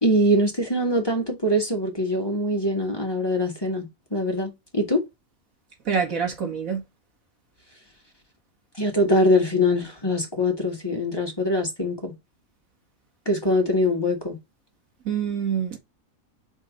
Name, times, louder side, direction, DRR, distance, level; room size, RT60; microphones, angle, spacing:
voice 1, 0.0-5.0 8.8-12.1 13.3-14.4, left 1 dB, 20° left, 2.1 m, -23 dB
voice 2, 5.9-6.8 15.1-15.8, right 7 dB, 85° right, 2.4 m, -26 dB
5.0 x 4.3 x 5.3 m
omnidirectional pair, 1.4 m